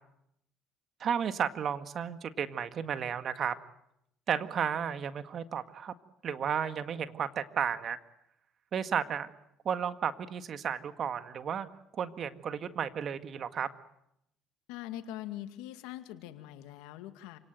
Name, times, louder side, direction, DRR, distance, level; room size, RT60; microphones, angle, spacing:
voice 1, 1.0-3.6 4.3-5.9 6.2-8.0 8.7-9.3 9.7-11.7 11.9-13.7, right 8 dB, 50° right, 10 dB, 1.8 m, -33 dB
voice 2, 14.7-17.4, left 13 dB, 80° left, 9 dB, 2.1 m, -42 dB
28.0 x 18.5 x 9.2 m, 0.78 s
supercardioid pair, 70°, 0 cm